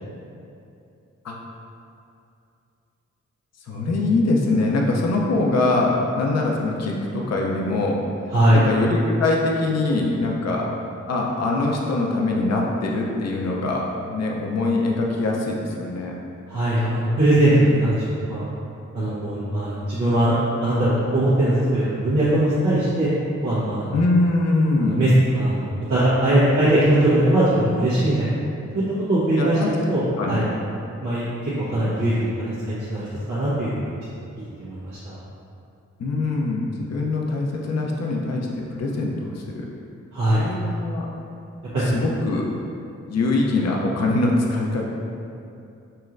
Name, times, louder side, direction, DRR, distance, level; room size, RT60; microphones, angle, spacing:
voice 1, 3.7-8.0 8.5-10.7 11.1-16.1 23.9-25.0 29.4-29.7 30.2-30.4 36.0-39.7 40.4-41.1 41.8-42.5 43.1-44.9, left 2 dB, 60° left, -1 dB, 0.7 m, -23 dB
voice 2, 8.3-8.6 16.5-18.4 18.9-20.3 20.6-23.1 23.4-23.9 24.8-28.3 28.7-29.6 29.9-30.4 31.0-33.8 34.6-35.2 40.1-40.4 41.7-41.8, right 1 dB, 90° right, -13 dB, 1.1 m, -20 dB
5.4 x 3.0 x 2.5 m, 2.6 s
cardioid pair, 60°, 30 cm